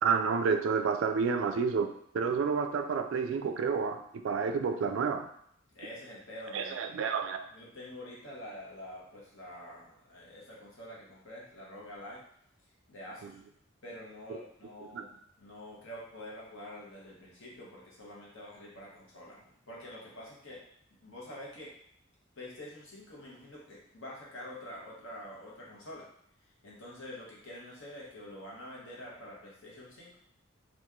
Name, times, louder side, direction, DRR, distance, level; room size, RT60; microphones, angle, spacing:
voice 1, 0.0-5.3 6.5-7.4 14.9-15.0, right 5 dB, 75° right, 7 dB, 0.3 m, -30 dB
voice 2, 5.7-6.9 7.5-12.2 12.9-13.4 13.8-20.6 21.0-21.7 22.4-26.1 26.6-30.2, left 1 dB, 75° left, -5 dB, 1.1 m, -47 dB
3.0 x 2.5 x 3.6 m, 0.67 s
head